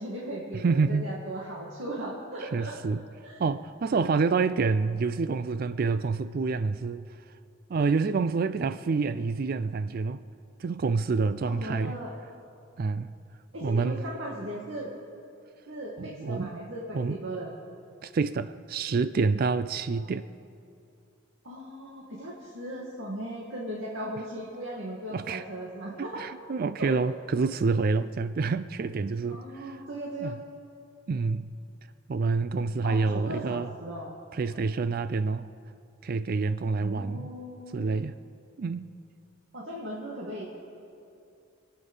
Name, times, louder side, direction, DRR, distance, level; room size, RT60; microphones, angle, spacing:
voice 1, 0.0-2.8 3.2-3.4 3.9-4.4 11.4-12.1 13.5-14.9 15.7-17.5 21.4-26.2 26.8-26.9 29.3-30.4 32.8-34.1 36.8-38.0 39.5-40.5, right 1 dB, 75° right, 2.0 m, -37 dB
voice 2, 0.5-1.1 2.4-3.0 3.4-7.1 7.7-10.2 10.6-12.0 12.8-13.1 13.6-14.0 16.0-16.5 16.9-17.2 18.0-20.3 25.1-25.4 26.0-29.8 30.2-30.4 31.1-31.5 32.1-33.7 34.3-35.5 36.0-37.3 37.7-38.1 38.6-38.9, right 4 dB, 50° right, 0.4 m, -27 dB
27.0 x 9.1 x 5.5 m
head